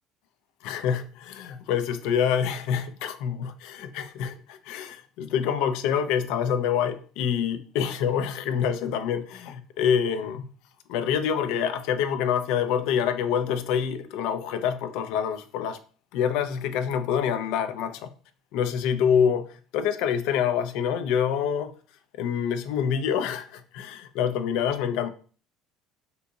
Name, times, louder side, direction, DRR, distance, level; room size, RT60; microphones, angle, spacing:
voice 1, 0.6-10.4 10.9-15.8 16.1-18.1 18.5-21.7 22.2-25.1, left 8 dB, 75° left, 0.4 m, -26 dB
3.5 x 2.7 x 2.7 m
supercardioid pair, 100°, 0 cm